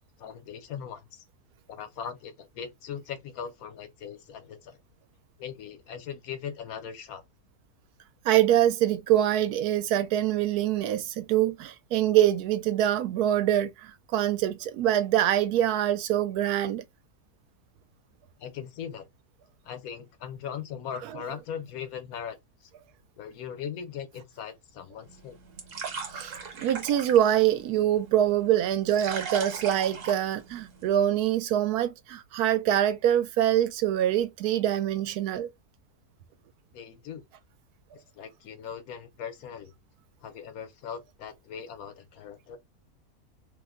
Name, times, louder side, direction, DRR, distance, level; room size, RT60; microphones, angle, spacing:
voice 1, 0.2-1.2 1.7-4.8 5.4-7.2 18.4-19.1 19.6-22.7 23.2-25.4 36.7-37.2 37.9-39.7 40.2-42.6, left 8 dB, 75° left, 1.1 m, -39 dB
voice 2, 8.2-16.8 26.1-35.5, right 11 dB, 85° right, 1.1 m, -24 dB
sound 1, 25.0-31.0, right 6 dB, 60° right, 1.2 m, -39 dB
2.8 x 2.1 x 3.5 m
omnidirectional pair, 1.6 m